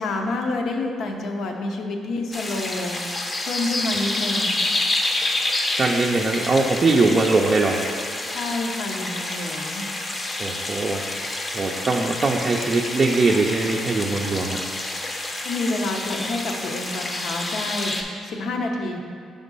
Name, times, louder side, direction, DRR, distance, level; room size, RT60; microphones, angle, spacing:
voice 1, 0.0-3.0 3.4-4.5 8.3-9.9 15.4-19.1, left 2 dB, 70° left, 2 dB, 0.6 m, -28 dB
sound 1, 2.3-18.0, left 2 dB, 30° left, 0.6 m, -28 dB
voice 2, 5.8-7.8 10.4-14.6, right 3 dB, 35° right, -1 dB, 0.4 m, -21 dB
5.1 x 3.6 x 5.3 m, 2.2 s
cardioid pair, 90°, 0 cm